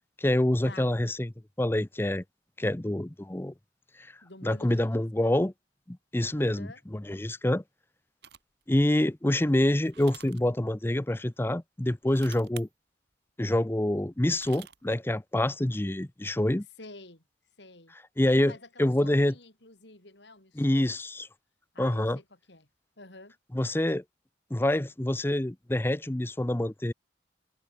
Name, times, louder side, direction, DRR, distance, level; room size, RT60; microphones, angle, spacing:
voice 1, 0.2-1.3 1.6-2.2 2.6-3.5 4.4-5.5 5.9-7.6 8.7-12.7 13.4-16.7 18.2-18.5 18.8-19.3 20.6-21.3 21.8-22.2 23.5-24.0 24.5-26.9, left 1 dB, 10° left, 0.6 m, -26 dB
voice 2, 4.2-4.9 5.2-5.4 6.4-6.8 16.8-17.2 17.6-17.9 18.3-21.0 21.7-22.7 23.0-23.4, left 2 dB, 65° left, 4.9 m, -49 dB
sound 1, 8.2-8.6 9.8-10.4 12.0-12.7 14.1-15.0, right 9 dB, 60° right, 2.3 m, -48 dB
head